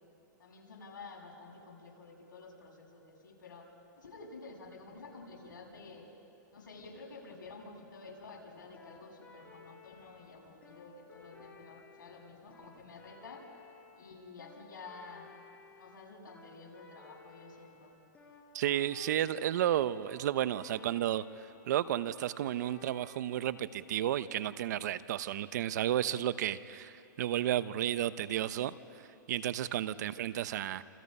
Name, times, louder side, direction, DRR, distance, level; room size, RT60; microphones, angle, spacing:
voice 1, 0.4-3.7 4.0-6.0 6.5-13.4 14.0-15.3 15.7-18.0, left 3 dB, 80° left, -1 dB, 7.4 m, -50 dB
sound 1, 8.7-23.6, left 4 dB, 15° left, 5.0 m, -57 dB
voice 2, 18.5-28.7 29.3-30.8, right 12 dB, 60° right, 15 dB, 0.9 m, -32 dB
29.5 x 28.0 x 5.6 m, 2.7 s
hypercardioid pair, 140°, 11 cm